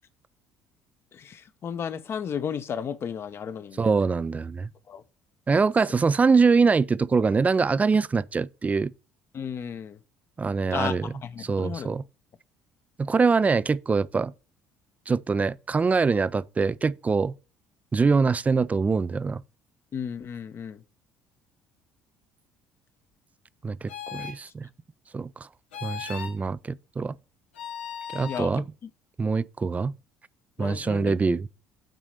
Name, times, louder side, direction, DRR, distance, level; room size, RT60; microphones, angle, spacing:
voice 1, 1.1-4.0 4.9-5.0 9.3-10.0 10.7-12.0 19.9-20.8 28.2-28.9 30.6-31.4, left 7 dB, 45° left, 1.0 m, -34 dB
voice 2, 3.8-4.7 5.5-8.9 10.4-11.1 11.4-12.0 13.0-14.3 15.1-17.3 17.9-19.4 23.6-24.7 25.1-25.5 25.8-27.2 28.1-28.6 29.2-29.9 30.6-31.5, right 4 dB, 25° right, 0.5 m, -24 dB
sound 1, 23.9-24.4 25.7-26.4 27.5-28.5, left 8 dB, 90° left, 1.1 m, -37 dB
9.1 x 4.1 x 6.6 m
hypercardioid pair, 60°, 6 cm